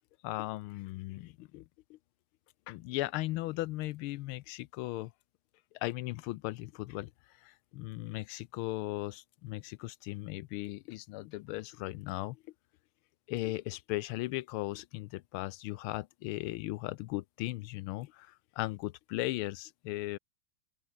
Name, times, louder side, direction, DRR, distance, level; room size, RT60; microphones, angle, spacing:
voice 1, 0.2-1.6 1.9-2.0 2.7-5.1 5.7-12.4 13.3-20.2, left 18 dB, 85° left, 1.5 m, -37 dB
open air
omnidirectional pair, 2.3 m